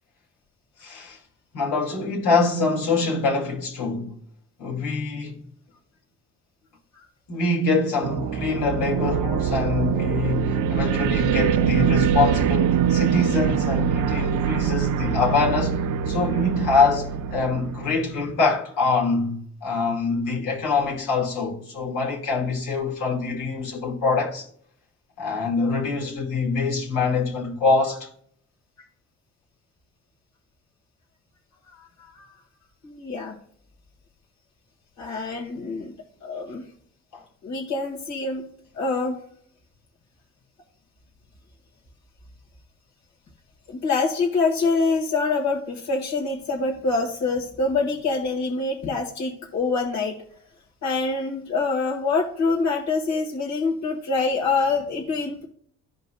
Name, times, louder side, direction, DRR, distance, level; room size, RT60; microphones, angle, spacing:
voice 1, 0.8-1.2 1.5-4.1 4.6-5.4 7.3-24.5 25.2-28.1 37.1-37.2, left 4 dB, 80° left, 2.3 m, -24 dB
sound 1, 8.0-18.2, right 8 dB, 85° right, 0.5 m, -23 dB
voice 2, 31.7-32.3 32.8-33.3 35.0-35.9 36.2-36.6 37.4-38.4 38.7-39.2 43.7-50.2 50.8-55.5, left 3 dB, 65° left, 1.7 m, -25 dB
15.0 x 5.2 x 2.3 m
cardioid pair, 90°, 30 cm